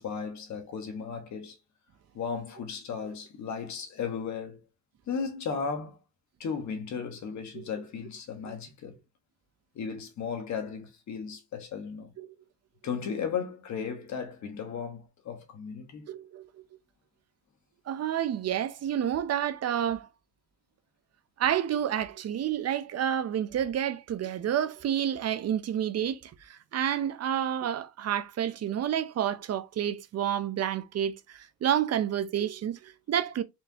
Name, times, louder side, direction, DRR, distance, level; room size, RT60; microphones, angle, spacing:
voice 1, 0.0-1.6 2.1-4.6 5.1-6.0 6.4-9.0 9.7-12.1 12.8-16.1, left 6 dB, 65° left, 1.4 m, -35 dB
voice 2, 16.1-16.5 17.9-20.1 21.4-33.4, right 10 dB, 55° right, 0.7 m, -29 dB
4.4 x 3.3 x 2.8 m
cardioid pair, 90°, 30 cm